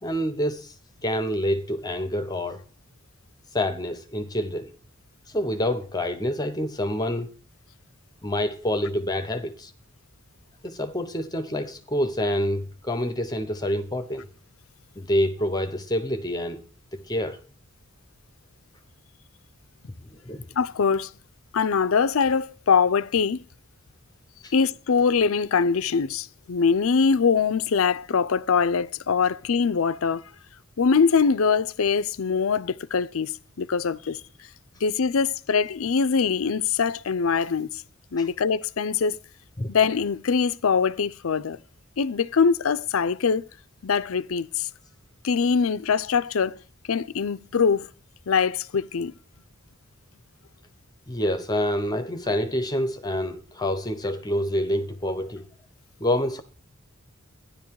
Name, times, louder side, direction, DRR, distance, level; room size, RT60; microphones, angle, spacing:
voice 1, 0.0-0.7 1.0-2.6 3.5-4.7 5.3-7.3 8.2-9.7 10.6-14.3 15.0-16.6 16.9-17.4 20.3-20.4 24.4-24.5 38.2-38.3 39.6-39.7 51.1-55.4 56.0-56.4, left 1 dB, 20° left, 0.8 m, -27 dB
voice 2, 20.6-21.1 21.5-23.4 24.5-30.2 30.8-33.3 33.6-34.2 34.8-37.7 38.1-39.2 39.7-41.6 42.0-43.4 43.8-44.7 45.2-46.5 46.9-47.9 48.3-49.1, left 5 dB, 75° left, 0.5 m, -23 dB
12.5 x 10.5 x 4.7 m
head